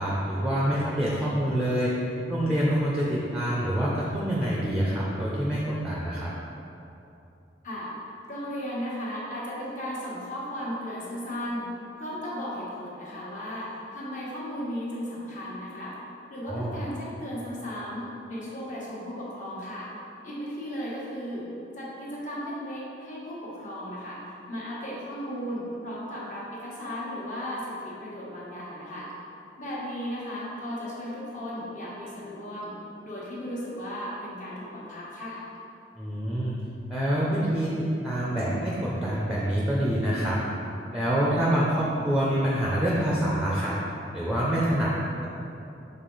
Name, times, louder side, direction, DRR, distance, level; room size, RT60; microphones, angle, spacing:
voice 1, 0.0-1.9 2.3-6.3 16.5-16.8 36.0-36.5 36.9-40.4 40.9-43.7 44.1-44.9, right 1 dB, 5° right, -6 dB, 0.6 m, -26 dB
voice 2, 8.3-11.7 12.0-15.9 16.3-19.9 20.2-21.5 21.7-29.1 29.6-32.7 33.0-35.4, equal, 45° left, -7 dB, 1.4 m, -35 dB
6.5 x 3.8 x 3.9 m, 2.8 s
head